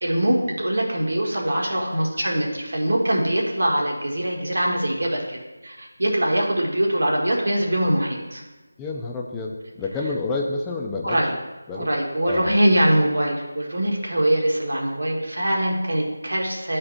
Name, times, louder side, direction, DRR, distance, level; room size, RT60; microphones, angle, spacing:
voice 1, 0.0-8.4 11.0-11.3 11.7-16.8, right 1 dB, 75° right, -1 dB, 1.5 m, -23 dB
voice 2, 8.8-11.2 11.7-11.9 12.3-12.6, left 3 dB, 5° left, -1 dB, 0.3 m, -29 dB
10.5 x 4.3 x 2.6 m, 1.2 s
figure-of-eight pair, 175°, 0 cm